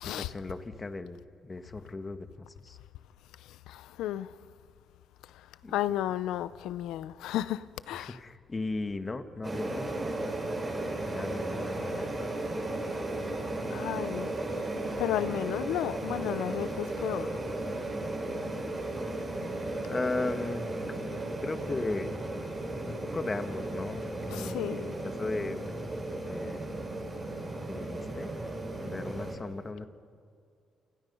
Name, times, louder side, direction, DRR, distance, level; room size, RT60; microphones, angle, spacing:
voice 1, 0.0-2.8 5.6-5.7 7.9-10.0 11.0-12.1 19.9-20.9 21.4-22.2 22.9-25.7 26.2-26.7 27.2-27.3 27.7-28.3 28.8-29.9, left 3 dB, 25° left, 1.5 m, -37 dB
voice 2, 3.7-4.3 5.7-8.2 13.7-14.3 15.0-17.4 24.3-24.9, left 12 dB, 90° left, 0.7 m, -33 dB
sound 1, 9.4-29.3, right 2 dB, 25° right, 7.8 m, -35 dB
28.5 x 28.5 x 5.5 m
cardioid pair, 90°, 0 cm